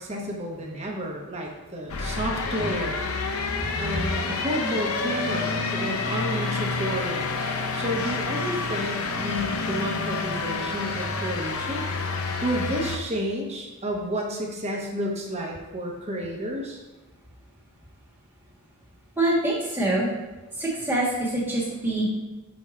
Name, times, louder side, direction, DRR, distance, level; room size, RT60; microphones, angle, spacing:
voice 1, 0.0-3.0 3.8-11.9 12.4-16.8, equal, 30° right, 0 dB, 0.9 m, -31 dB
sound 1, 1.9-13.0, left 4 dB, 70° left, 0.6 m, -28 dB
voice 2, 19.2-20.1 20.6-22.1, right 1 dB, 10° right, -5 dB, 1.4 m, -25 dB
6.3 x 3.6 x 4.2 m, 1.1 s
head